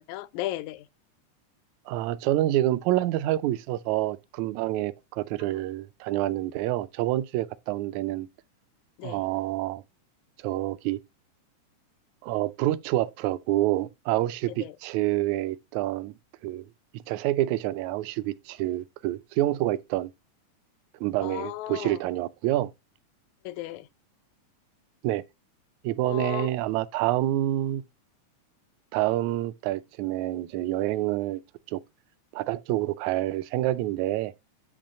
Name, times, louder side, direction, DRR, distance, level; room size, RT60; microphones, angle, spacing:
voice 1, 0.1-0.9 5.4-5.6 9.0-9.2 14.6-14.8 21.2-22.0 23.4-23.9 26.0-26.5, left 16 dB, 80° left, 1.8 m, -35 dB
voice 2, 1.9-8.3 9.0-9.8 10.4-11.0 12.2-16.1 16.4-16.7 16.9-20.1 21.0-22.7 25.0-25.2 25.8-27.8 28.9-31.4 31.7-31.8 32.3-34.3, right 15 dB, 80° right, 1.8 m, -27 dB
8.7 x 3.0 x 5.1 m
omnidirectional pair, 3.4 m